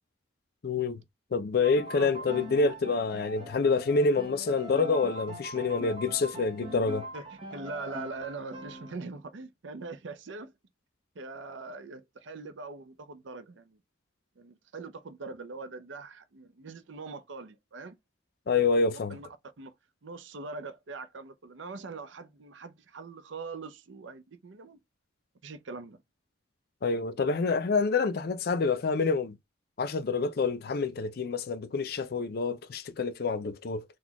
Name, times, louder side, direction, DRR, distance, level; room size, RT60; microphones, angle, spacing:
voice 1, 0.6-1.0 1.3-7.0 18.5-19.2 26.8-29.4 29.8-33.8, left 4 dB, 50° left, 0.4 m, -27 dB
Piano, 1.6-8.9, equal, 25° right, 0.8 m, -42 dB
voice 2, 7.1-10.5 11.1-13.8 14.4-18.0 18.9-19.3 19.6-19.7 20.0-24.8 25.4-26.0, right 3 dB, 75° right, 0.5 m, -42 dB
4.1 x 2.2 x 2.8 m
head